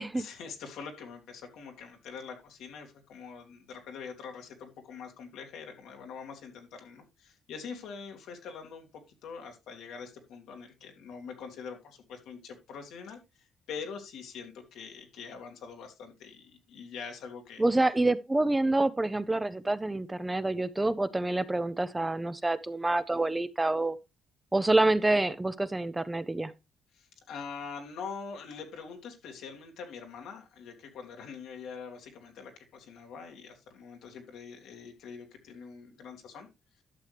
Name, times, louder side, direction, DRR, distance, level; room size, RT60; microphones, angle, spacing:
voice 1, 0.1-17.6 26.9-36.5, left 6 dB, 85° left, 2.3 m, -44 dB
voice 2, 17.6-24.0 24.5-26.5, right 2 dB, 15° right, 0.6 m, -27 dB
11.5 x 6.5 x 3.3 m
cardioid pair, 90°, 0 cm